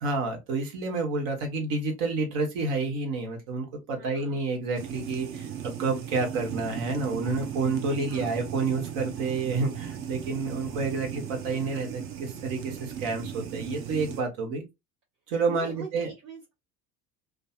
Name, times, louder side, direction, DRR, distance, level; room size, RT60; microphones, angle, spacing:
voice 1, 0.0-14.6 15.3-16.1, right 3 dB, 55° right, 1.1 m, -29 dB
voice 2, 4.0-4.4 8.0-8.4 10.1-10.2 15.5-16.5, right 6 dB, 75° right, 1.1 m, -43 dB
sound 1, 4.8-14.2, right 9 dB, 30° right, 0.4 m, -37 dB
2.5 x 2.3 x 2.2 m
figure-of-eight pair, 70°, 50 cm